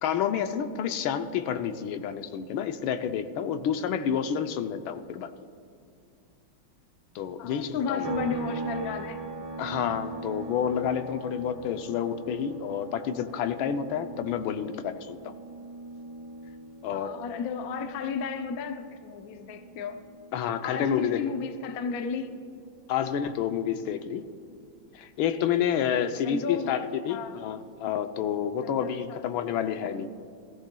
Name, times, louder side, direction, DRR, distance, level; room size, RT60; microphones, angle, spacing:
voice 1, 0.0-5.3 7.1-8.1 9.6-15.3 16.8-17.1 20.3-21.2 22.9-24.3 24.9-30.1, left 8 dB, 80° left, 9 dB, 1.4 m, -29 dB
voice 2, 7.4-9.2 16.9-20.0 20.6-22.3 25.8-26.8 27.1-27.4 28.6-29.2, left 6 dB, 65° left, 7 dB, 0.9 m, -34 dB
sound 1, 8.0-21.6 21.9-24.1, right 3 dB, 85° right, 2.0 m, -41 dB
19.0 x 14.5 x 2.2 m, 2.4 s
omnidirectional pair, 2.2 m